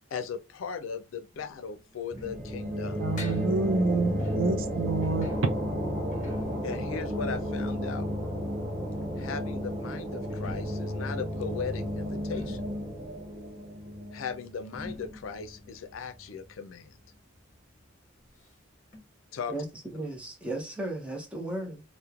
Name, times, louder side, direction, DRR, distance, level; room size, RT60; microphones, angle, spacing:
voice 1, 0.1-3.1 6.6-8.1 9.2-12.6 14.1-17.0 19.3-19.5, left 6 dB, 85° left, 0.4 m, -37 dB
sound 1, 1.3-9.0 10.2-17.5 17.8-17.9 18.2-18.3 18.9-19.0, left 2 dB, 40° left, 0.9 m, -44 dB
sound 2, 2.1-15.5, equal, 30° right, 1.1 m, -33 dB
voice 2, 3.0-5.3, right 3 dB, 85° right, 0.5 m, -28 dB
voice 3, 19.9-21.8, right 1 dB, 5° right, 0.6 m, -35 dB
2.9 x 2.1 x 2.3 m
head